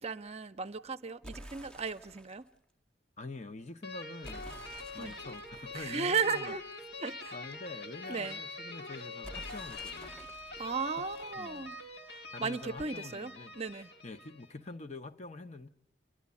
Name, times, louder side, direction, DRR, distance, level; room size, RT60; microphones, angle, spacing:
voice 1, 0.0-2.5 5.0-5.1 5.7-6.6 7.0-7.3 8.1-8.4 10.6-11.8 12.1-13.9, right 5 dB, 35° right, 0.7 m, -35 dB
sound 1, 1.2-2.5 4.2-7.0 9.2-12.0, right 1 dB, 5° left, 0.7 m, -51 dB
voice 2, 3.2-4.5 4.9-6.6 7.3-10.3 11.0-11.1 11.4-11.7 12.3-13.6 14.0-15.7, left 2 dB, 40° left, 0.8 m, -46 dB
sound 2, 3.8-14.6, left 3 dB, 70° left, 1.8 m, -44 dB
30.0 x 11.5 x 8.3 m
head